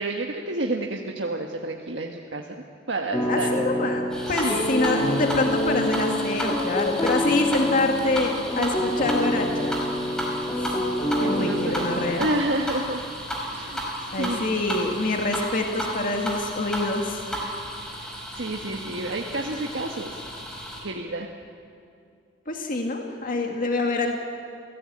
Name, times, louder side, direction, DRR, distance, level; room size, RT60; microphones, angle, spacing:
voice 1, 0.0-2.6 2.9-3.7 4.2-4.6 11.1-13.1 13.5-14.6 17.8-18.0 18.3-20.2 20.8-21.3, right 2 dB, 75° right, 1 dB, 1.5 m, -30 dB
sound 1, 3.1-12.1, left 1 dB, 20° left, 2.5 m, -27 dB
voice 2, 3.3-4.0 4.3-9.7 10.6-10.7 11.2-12.3 14.1-17.2 22.5-24.2, left 2 dB, 50° left, 2 dB, 2.0 m, -26 dB
sound 2, 4.1-20.8, equal, 5° left, 5.1 m, -33 dB
28.0 x 17.0 x 8.7 m, 2.4 s
head